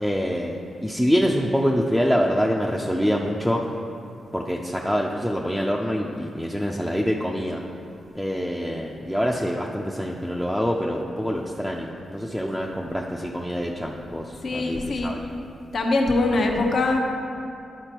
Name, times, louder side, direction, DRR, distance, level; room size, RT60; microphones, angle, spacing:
voice 1, 0.0-3.6 4.3-7.6 8.1-15.2, equal, ahead, -2 dB, 0.5 m, -25 dB
voice 2, 14.4-15.1 15.7-17.0, left 2 dB, 60° left, 1 dB, 1.0 m, -22 dB
11.0 x 4.4 x 4.5 m, 2.6 s
cardioid pair, 70°, 0 cm